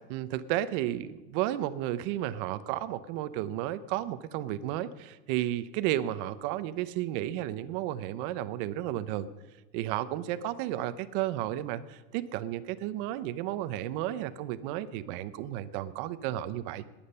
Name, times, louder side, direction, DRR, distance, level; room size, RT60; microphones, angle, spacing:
voice 1, 0.1-9.3 9.7-16.9, right 13 dB, 55° right, 13 dB, 0.8 m, -33 dB
20.0 x 8.7 x 5.6 m, 1.1 s
cardioid pair, 175°, 31 cm